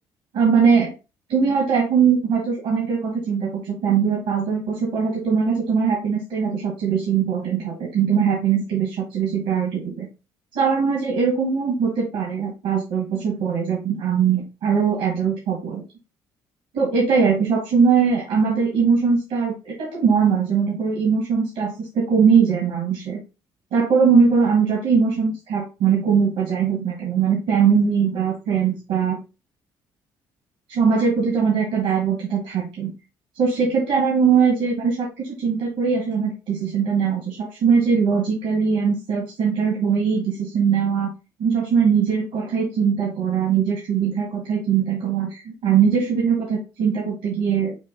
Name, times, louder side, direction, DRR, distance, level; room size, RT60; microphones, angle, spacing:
voice 1, 0.3-0.9 1.3-10.1 10.5-15.8 16.7-23.2 23.7-29.2 30.7-32.9 33.3-41.1 41.4-47.9, right 6 dB, 80° right, 0 dB, 1.4 m, -21 dB
5.8 x 2.3 x 3.7 m, 0.29 s
supercardioid pair, 60°, 9 cm